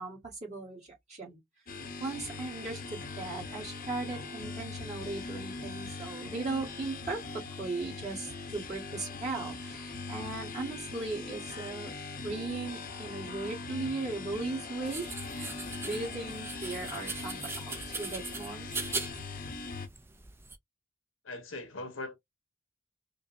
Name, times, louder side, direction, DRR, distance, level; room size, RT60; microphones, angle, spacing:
voice 1, 0.0-1.4 1.7-11.9 12.2-18.7, right 3 dB, 35° right, 1.7 m, -38 dB
sound 1, 1.7-19.9, left 3 dB, 45° left, 0.8 m, -41 dB
sound 2, 14.9-20.6, right 3 dB, 10° right, 0.4 m, -40 dB
voice 2, 21.2-22.3, left 2 dB, 90° left, 1.3 m, -40 dB
5.1 x 2.2 x 2.6 m
head